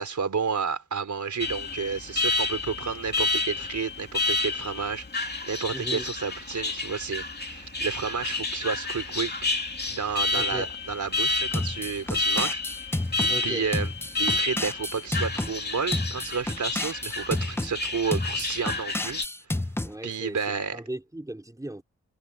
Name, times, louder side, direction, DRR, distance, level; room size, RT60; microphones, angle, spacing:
voice 1, 0.0-9.6 9.9-12.6 12.9-13.1 13.4-13.9 14.2-19.2 19.5-19.6 20.0-20.8, right 5 dB, 75° right, 4.0 m, -31 dB
Alarm, 1.4-19.2, left 3 dB, 35° left, 2.8 m, -30 dB
voice 2, 5.7-6.1 10.3-10.7 13.3-13.7 19.8-21.8, right 1 dB, 10° right, 3.5 m, -37 dB
sound 1, 11.5-13.3 13.7-15.5 15.9-17.7 18.1-19.9, left 1 dB, 10° left, 0.6 m, -30 dB
wide cardioid pair, 90°, 30 cm